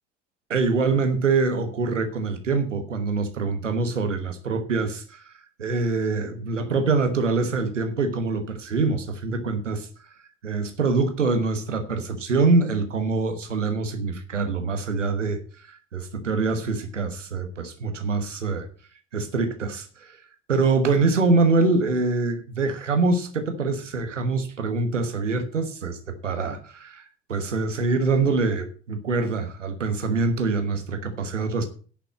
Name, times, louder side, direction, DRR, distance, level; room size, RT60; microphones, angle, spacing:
voice 1, 0.5-5.3 5.6-9.9 10.4-18.7 19.1-20.2 20.5-27.0 27.3-31.7, right 3 dB, 85° right, 8 dB, 1.3 m, -24 dB
10.5 x 5.9 x 7.7 m, 0.41 s
figure-of-eight pair, 50°, 36 cm